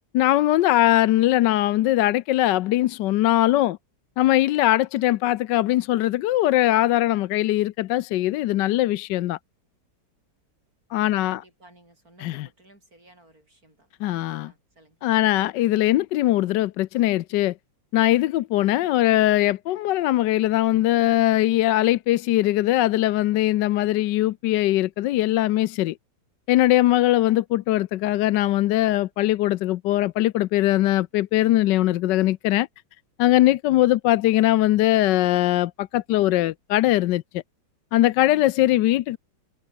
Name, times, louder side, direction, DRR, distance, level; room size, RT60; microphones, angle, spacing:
voice 1, 0.1-3.8 4.2-9.4 10.9-11.4 12.2-12.5 14.0-14.5 15.0-17.5 17.9-25.9 26.5-32.7 33.2-37.4 37.9-39.2, left 15 dB, 75° left, 1.2 m, -21 dB
voice 2, 11.2-13.9 14.4-15.0, right 1 dB, 45° right, 7.8 m, -55 dB
omnidirectional pair, 2.1 m